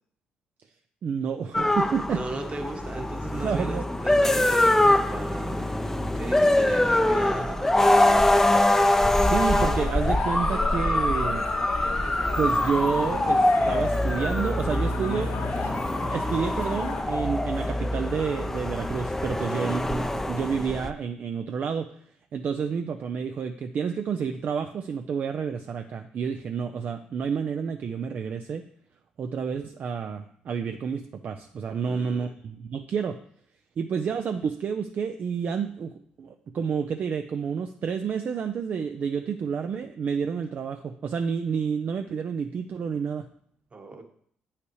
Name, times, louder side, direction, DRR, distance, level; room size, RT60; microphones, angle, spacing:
voice 1, 1.0-2.2 3.4-3.8 9.2-11.5 12.4-15.3 16.0-21.9 22.3-28.6 29.2-33.2 33.8-35.9 36.2-43.2, right 6 dB, 55° right, 7 dB, 0.4 m, -29 dB
sound 1, 1.5-20.9, left 1 dB, 10° left, 0.5 m, -24 dB
voice 2, 2.1-5.7 6.1-8.7 19.4-19.7 31.8-32.3 43.7-44.1, right 2 dB, 35° right, 4 dB, 1.3 m, -37 dB
sound 2, 9.4-17.0, left 6 dB, 85° left, 0.9 m, -36 dB
8.1 x 5.7 x 3.1 m, 0.63 s
supercardioid pair, 65°, 3 cm